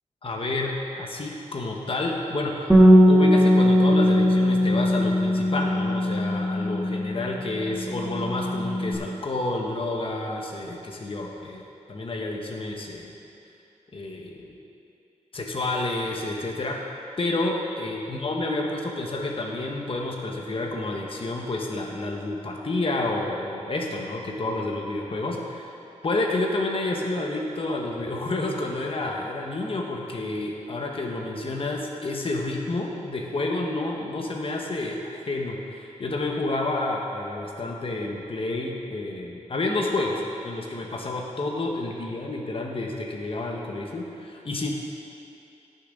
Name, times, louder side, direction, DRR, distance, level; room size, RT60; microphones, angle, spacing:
voice 1, 0.2-2.7 3.1-13.1 13.9-14.6 15.3-16.8 17.2-25.7 26.0-44.7, left 2 dB, 45° left, -1 dB, 1.3 m, -29 dB
Bass guitar, 2.7-7.4 7.7-8.9, equal, 10° right, 1.6 m, -19 dB
17.5 x 7.1 x 3.9 m, 2.7 s
wide cardioid pair, 75°, 13 cm